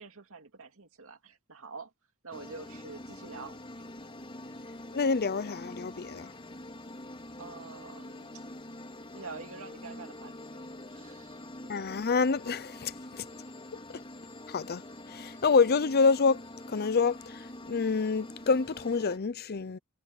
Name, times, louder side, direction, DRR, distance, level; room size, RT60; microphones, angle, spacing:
voice 1, 0.0-1.9 2.2-3.6 7.4-8.4 9.1-11.4, right 4 dB, 65° right, 2.4 m, -46 dB
sound 1, 2.3-19.2, left 1 dB, 25° left, 3.7 m, -45 dB
voice 2, 4.9-6.3 11.7-13.3 13.9-14.0 14.5-16.4 16.7-19.8, left 4 dB, 45° left, 0.6 m, -27 dB
head